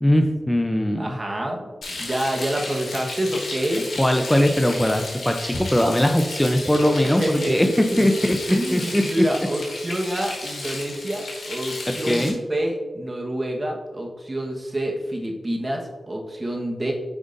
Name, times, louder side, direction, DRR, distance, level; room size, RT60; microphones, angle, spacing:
voice 1, 0.0-1.2 4.0-8.4 8.7-9.0 11.9-12.4, left 1 dB, 10° left, 5 dB, 0.5 m, -20 dB
voice 2, 1.0-3.8 6.8-8.1 8.5-16.9, right 1 dB, 40° right, 1 dB, 1.3 m, -27 dB
Frying (food), 1.8-12.3, left 2 dB, 85° left, 1.5 m, -33 dB
8.0 x 5.0 x 2.6 m, 1.2 s
cardioid pair, 50°, 0 cm